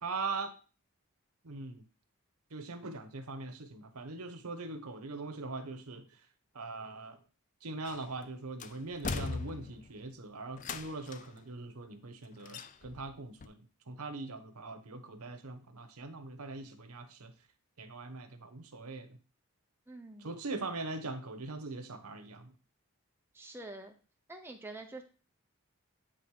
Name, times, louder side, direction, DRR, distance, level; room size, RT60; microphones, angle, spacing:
voice 1, 0.0-0.5 1.4-1.8 2.5-6.1 6.5-7.2 7.6-13.5 13.9-17.3 17.8-19.2 20.2-22.5, right 3 dB, 90° right, 1.0 m, -41 dB
sound 1, 7.9-8.2 8.6-10.0 10.6-11.4 12.4-13.1 13.4-13.5, left 4 dB, 35° left, 0.4 m, -40 dB
voice 2, 19.9-20.3 23.3-23.9 24.3-25.0, right 2 dB, 10° right, 0.8 m, -46 dB
9.1 x 3.7 x 4.8 m
head